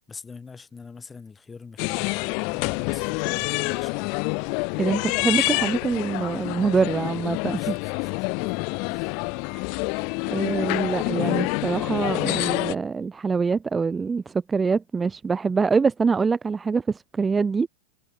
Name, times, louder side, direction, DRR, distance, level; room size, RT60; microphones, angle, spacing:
voice 1, 0.1-4.1 7.5-8.1 8.4-9.4, left 5 dB, 15° left, 4.4 m, -44 dB
sound 1, 1.8-12.8, left 37 dB, 45° left, 0.6 m, -27 dB
voice 2, 4.8-7.6 9.5-9.6 10.3-17.7, right 5 dB, 15° right, 0.6 m, -24 dB
figure-of-eight pair, 90°, 0 cm